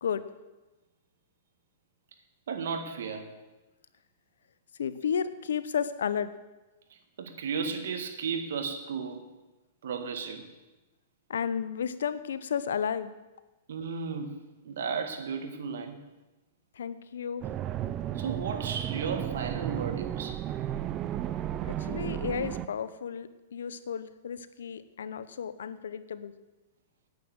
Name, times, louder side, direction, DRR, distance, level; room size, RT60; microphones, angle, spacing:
voice 1, 2.5-3.3 7.2-9.3 9.8-10.4 13.7-14.4 14.6-16.0 18.2-20.4, right 5 dB, 75° right, 7 dB, 1.8 m, -34 dB
voice 2, 4.8-6.3 11.3-13.1 16.8-17.4 21.9-26.3, left 7 dB, 90° left, 14 dB, 0.8 m, -32 dB
sound 1, 17.4-22.7, right 11 dB, 25° right, 0.5 m, -33 dB
9.5 x 9.1 x 7.8 m, 1.1 s
hypercardioid pair, 150°, 0 cm